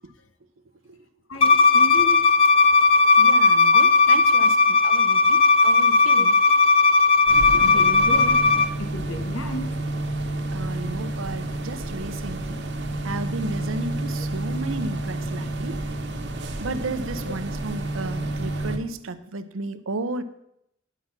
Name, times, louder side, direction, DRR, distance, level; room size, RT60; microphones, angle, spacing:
voice 1, 1.3-2.2 6.2-6.3 7.6-8.4 8.8-9.7, left 1 dB, 80° left, 8 dB, 1.1 m, -33 dB
Bowed string instrument, 1.4-8.7, left 4 dB, 30° left, 0.3 m, -17 dB
voice 2, 3.2-6.4 7.5-7.6 10.5-12.6 13.0-15.8 16.6-20.2, right 2 dB, 85° right, 12 dB, 0.7 m, -33 dB
sound 1, 7.3-18.8, right 1 dB, 60° right, 1.1 m, -30 dB
10.0 x 6.0 x 5.8 m, 0.78 s
head